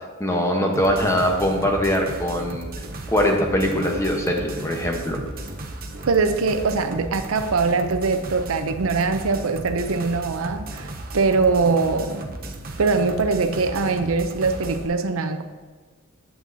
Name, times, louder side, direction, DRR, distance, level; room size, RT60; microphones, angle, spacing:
voice 1, 0.2-2.7 3.1-5.2, equal, 15° left, 2 dB, 1.0 m, -22 dB
sound 1, 0.7-14.9, right 2 dB, 45° right, 0.9 m, -35 dB
voice 2, 6.1-12.2 12.8-15.4, right 4 dB, 80° right, 8 dB, 0.6 m, -22 dB
11.0 x 7.7 x 2.7 m, 1.4 s
head